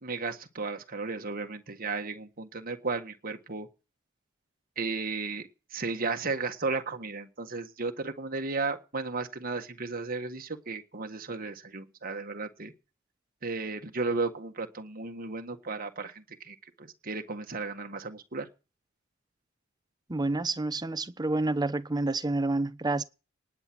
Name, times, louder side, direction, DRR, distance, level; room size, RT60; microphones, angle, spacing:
voice 1, 0.0-3.7 4.8-12.7 13.4-18.5, right 3 dB, 45° right, 1.6 m, -34 dB
voice 2, 20.1-23.0, right 2 dB, 20° right, 0.8 m, -29 dB
19.0 x 8.9 x 6.2 m
head